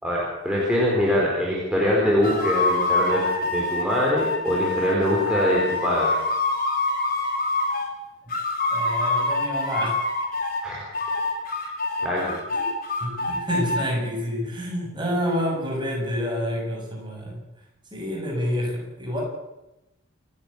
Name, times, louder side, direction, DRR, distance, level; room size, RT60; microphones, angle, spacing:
voice 1, 0.0-6.1 10.6-10.9 11.4-11.7 12.0-12.3, equal, 5° right, -5 dB, 4.6 m, -23 dB
sound 1, 2.2-7.9 8.3-10.6 10.9-13.8, left 2 dB, 40° left, 4.4 m, -25 dB
voice 2, 8.7-9.9 12.5-12.7 13.0-17.4 17.9-19.2, equal, 20° right, -1 dB, 7.3 m, -28 dB
28.0 x 11.0 x 8.6 m, 0.96 s
head